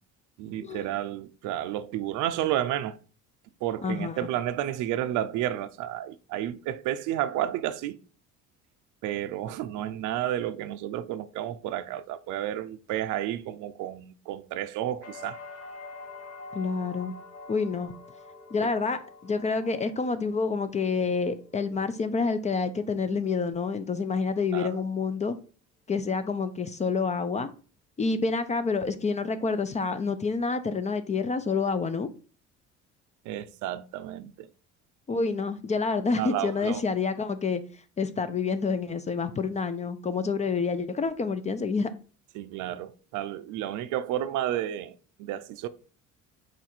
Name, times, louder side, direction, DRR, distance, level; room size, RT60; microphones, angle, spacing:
voice 1, 0.4-3.0 3.6-8.0 9.0-15.4 18.6-19.0 24.5-24.7 33.2-34.5 36.2-36.8 42.3-45.7, right 12 dB, 70° right, 0.5 m, -31 dB
voice 2, 3.8-4.3 16.5-17.1 17.5-17.9 18.5-25.4 25.9-27.5 28.0-32.1 35.1-37.6 38.0-41.9, left 4 dB, 25° left, 0.4 m, -28 dB
sound 1, 15.0-22.9 23.3-24.0, left 3 dB, 50° left, 1.1 m, -46 dB
4.6 x 2.4 x 4.2 m
cardioid pair, 100°, 31 cm